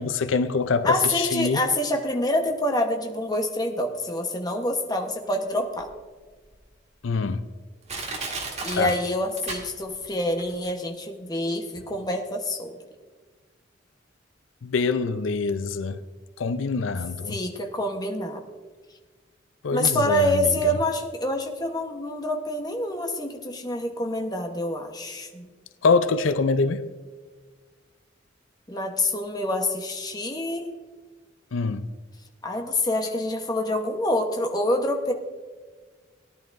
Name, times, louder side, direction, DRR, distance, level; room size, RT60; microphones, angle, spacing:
voice 1, 0.0-1.6 7.0-7.4 8.8-8.9 14.6-16.0 16.4-17.3 19.6-20.3 25.8-26.8 31.5-31.9, left 4 dB, 90° left, 0.5 m, -24 dB
voice 2, 0.8-5.9 8.6-12.8 17.3-18.4 19.7-25.5 28.7-30.7 32.4-35.1, left 1 dB, 20° left, 1.0 m, -26 dB
Crushing, 5.8-5.9 6.5-6.6 7.3-7.4 7.9-10.1 10.4-10.5, right 3 dB, 35° right, 1.9 m, -34 dB
18.0 x 10.5 x 2.6 m
head